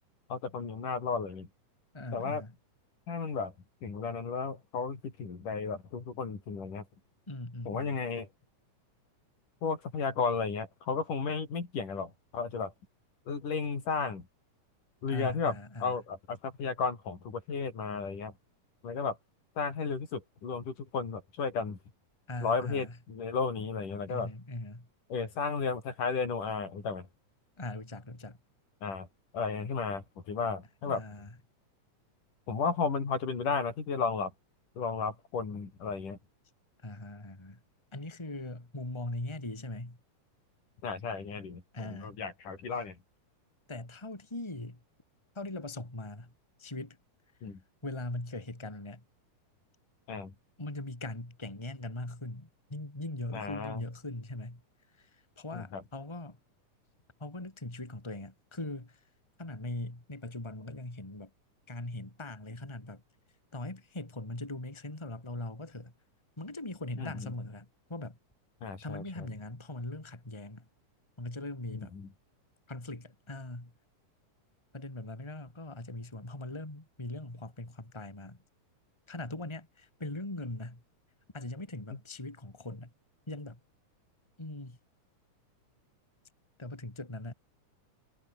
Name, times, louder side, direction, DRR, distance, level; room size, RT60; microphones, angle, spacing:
voice 1, 0.3-1.5 2.1-2.4 3.1-3.5 3.8-6.9 7.7-8.3 9.6-12.7 13.3-14.3 15.0-18.3 18.8-19.2 19.6-21.8 22.4-24.3 25.1-27.1 28.8-29.1 29.3-31.0 32.5-34.3 34.8-36.2 40.8-43.0 47.4-47.6 50.1-50.3 53.3-53.8 55.5-55.8 67.0-67.3 68.6-69.3 71.7-72.1, left 5 dB, 80° left, 6.5 m, -34 dB
voice 2, 1.9-2.5 7.3-8.0 15.1-15.9 22.3-23.0 24.1-24.9 27.6-28.4 30.8-31.3 36.8-37.6 37.9-40.0 41.7-42.1 43.7-44.8 45.3-46.3 46.6-47.0 47.8-49.0 50.6-54.6 54.9-56.4 57.2-59.0 59.4-61.3 61.7-63.0 63.5-65.9 66.4-68.2 68.8-70.7 71.2-71.9 72.7-73.7 74.7-78.4 79.1-80.8 81.3-82.9 83.3-83.6 84.4-84.8 86.6-87.3, left 2 dB, 10° left, 3.1 m, -40 dB
omnidirectional pair, 3.6 m